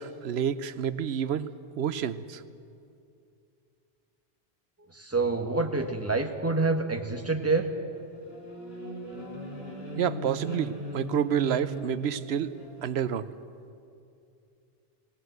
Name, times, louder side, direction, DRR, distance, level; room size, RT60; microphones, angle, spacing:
voice 1, 0.0-1.5 1.8-2.4 10.0-12.5 12.8-13.3, right 8 dB, 85° right, 14 dB, 1.0 m, -29 dB
voice 2, 4.9-7.7, right 3 dB, 15° right, 4 dB, 1.4 m, -27 dB
sound 1, 7.9-12.9, right 1 dB, 70° left, 3.9 m, -38 dB
20.0 x 18.0 x 7.9 m, 2.6 s
omnidirectional pair, 1.1 m